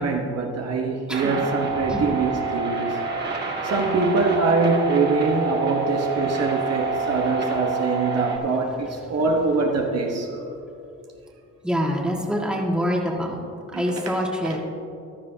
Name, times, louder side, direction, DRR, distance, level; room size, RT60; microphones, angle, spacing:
voice 1, 0.0-2.9 3.6-10.3 13.7-14.6, right 3 dB, 55° right, 1 dB, 1.2 m, -24 dB
sound 1, 1.1-8.4, right 4 dB, 35° right, 1.9 m, -28 dB
voice 2, 11.6-13.4 13.7-14.6, equal, 5° right, -1 dB, 1.8 m, -25 dB
15.0 x 11.5 x 2.8 m, 2.7 s
cardioid pair, 90°, 30 cm